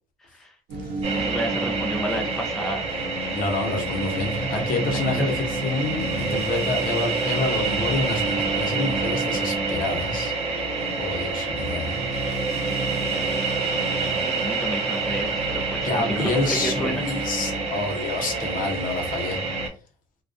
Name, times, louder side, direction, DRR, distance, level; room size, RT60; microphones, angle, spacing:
voice 1, 0.2-0.6 1.1-2.9 4.5-4.6 5.2-5.5 14.1-17.1, right 1 dB, ahead, 2 dB, 0.5 m, -31 dB
sound 1, 0.7-19.7, right 2 dB, 75° right, 0.7 m, -33 dB
sound 2, 1.0-19.7, right 4 dB, 40° right, 0.9 m, -28 dB
voice 2, 3.3-5.3 5.6-10.3 11.0-12.0 15.8-19.4, left 3 dB, 55° left, 3 dB, 0.8 m, -27 dB
2.2 x 2.2 x 2.5 m, 0.37 s
cardioid pair, 110°, 17 cm